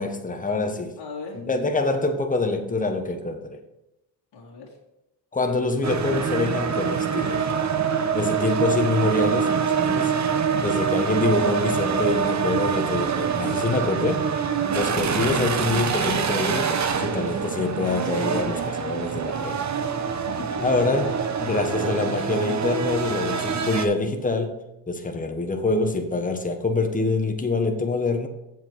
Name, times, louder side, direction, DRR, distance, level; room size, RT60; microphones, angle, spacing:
voice 1, 0.0-1.0 1.3-3.6 5.3-7.5 8.1-10.1 10.6-14.3 14.7-19.6 20.6-28.3, left 3 dB, 20° left, 1.3 m, -25 dB
voice 2, 1.0-1.5 4.3-4.8 10.5-10.7 20.1-21.1, left 3 dB, 65° left, 2.5 m, -38 dB
sound 1, 5.8-23.8, right 6 dB, 40° right, 1.0 m, -25 dB
7.7 x 7.4 x 4.7 m
cardioid pair, 105°, 44 cm